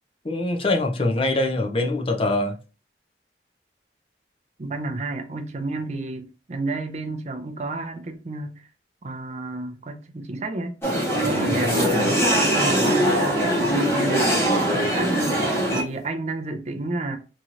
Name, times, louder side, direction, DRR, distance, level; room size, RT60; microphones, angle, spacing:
voice 1, 0.2-2.6 11.4-11.7, left 2 dB, 30° left, 0.5 m, -24 dB
voice 2, 4.6-8.5 9.0-10.8 11.2-15.3 15.7-17.2, right 2 dB, 40° right, 0.5 m, -31 dB
sound 1, 10.8-15.8, right 1 dB, 15° left, 1.1 m, -21 dB
3.1 x 2.8 x 2.4 m
head